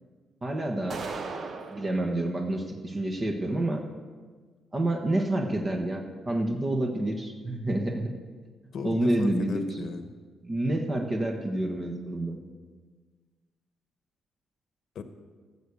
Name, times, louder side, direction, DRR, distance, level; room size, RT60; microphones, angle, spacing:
voice 1, 0.4-1.0 1.7-3.8 4.7-8.1 8.8-9.6 10.4-12.4, right 1 dB, 30° right, 2 dB, 1.3 m, -28 dB
sound 1, 0.9-1.9, right 4 dB, 50° right, 1.0 m, -36 dB
voice 2, 8.7-10.1 14.9-15.0, left 4 dB, 65° left, 9 dB, 1.1 m, -36 dB
14.0 x 7.0 x 6.7 m, 1.5 s
cardioid pair, 90°, 0 cm